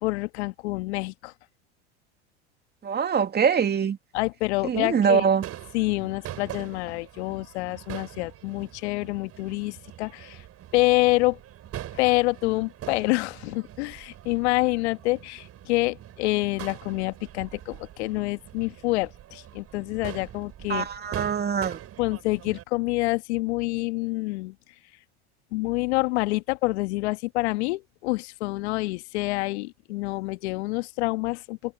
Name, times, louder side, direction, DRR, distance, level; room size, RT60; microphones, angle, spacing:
voice 1, 0.0-1.3 4.1-5.3 5.7-10.4 10.7-11.4 11.9-20.9 22.0-24.5 25.5-31.7, left 22 dB, 70° left, 1.6 m, -27 dB
voice 2, 2.8-4.0 4.6-5.4 20.7-21.8, right 7 dB, 30° right, 2.6 m, -23 dB
Crowd / Fireworks, 5.4-22.6, right 12 dB, 45° right, 6.1 m, -43 dB
hypercardioid pair, 85°, 35 cm